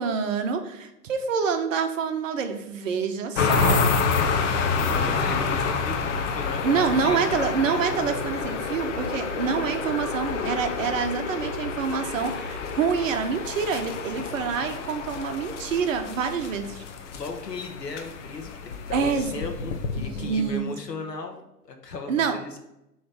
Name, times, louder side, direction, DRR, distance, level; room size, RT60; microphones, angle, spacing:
voice 1, 0.0-3.8 6.6-16.8 18.9-19.5 19.9-20.7 22.1-22.6, right 6 dB, 50° right, 7 dB, 0.9 m, -27 dB
sound 1, 3.4-20.6, left 5 dB, 50° left, 0.8 m, -28 dB
voice 2, 4.7-7.5 14.1-14.4 17.1-22.6, left 4 dB, 90° left, 4 dB, 1.2 m, -36 dB
6.7 x 3.2 x 5.1 m, 0.89 s
hypercardioid pair, 125°, 48 cm